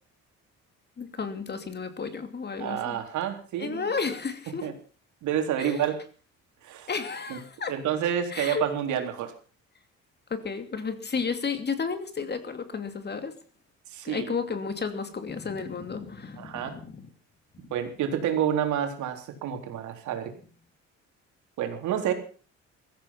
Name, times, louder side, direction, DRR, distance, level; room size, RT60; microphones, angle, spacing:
voice 1, 1.0-3.0 3.6-4.7 5.6-5.8 6.9-7.7 8.3-8.7 10.3-13.4 14.0-17.1, left 5 dB, 35° left, 9 dB, 2.8 m, -32 dB
voice 2, 2.6-3.9 4.6-4.7 5.2-6.0 6.6-6.9 7.3-7.4 7.7-9.3 13.9-14.3 16.4-16.8 17.6-20.3 21.6-22.1, right 9 dB, 75° right, 5 dB, 3.7 m, -29 dB
16.5 x 14.0 x 5.9 m, 0.41 s
cardioid pair, 90°, 30 cm